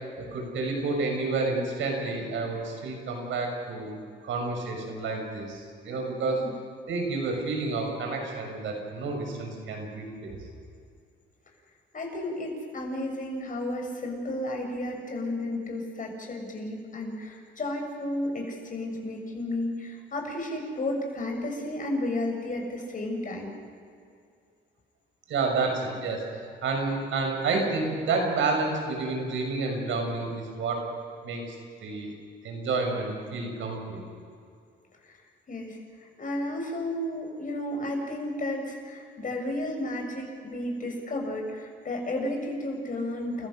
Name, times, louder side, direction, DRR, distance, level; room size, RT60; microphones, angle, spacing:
voice 1, 0.2-3.9 4.2-6.4 6.9-10.3 25.3-30.8 31.2-31.4 31.8-32.1 32.4-34.0, right 3 dB, 75° right, 2 dB, 6.3 m, -30 dB
voice 2, 11.9-23.6 35.0-35.2 35.5-43.5, left 1 dB, 40° left, 2 dB, 6.8 m, -33 dB
30.0 x 15.0 x 6.5 m, 2.3 s
cardioid pair, 90°, 20 cm